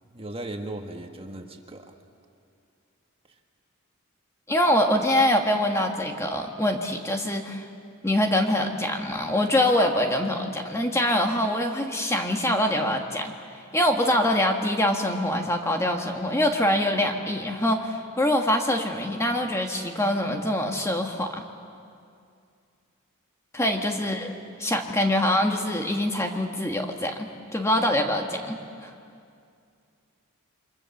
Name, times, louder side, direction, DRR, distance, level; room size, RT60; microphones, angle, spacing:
voice 1, 0.1-1.9 24.0-24.1, right 1 dB, 25° right, 4 dB, 1.6 m, -37 dB
voice 2, 4.5-7.6 8.0-13.3 13.7-21.4 23.5-24.3 24.6-28.9, left 1 dB, 15° left, 3 dB, 1.5 m, -24 dB
28.0 x 25.0 x 7.2 m, 2.4 s
head